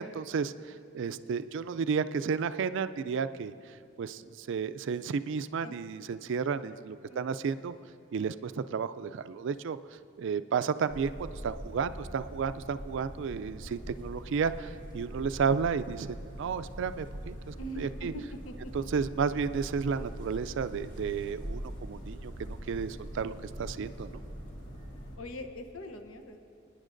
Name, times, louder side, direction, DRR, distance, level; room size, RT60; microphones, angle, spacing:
voice 1, 0.0-7.7 8.1-18.1 18.7-24.2, right 6 dB, 65° right, 12 dB, 0.3 m, -32 dB
sound 1, 10.9-25.2, equal, 40° left, 1.7 m, -43 dB
voice 2, 17.6-18.9 25.2-26.5, equal, 85° left, 6 dB, 0.8 m, -42 dB
26.5 x 9.9 x 2.6 m, 2.5 s
head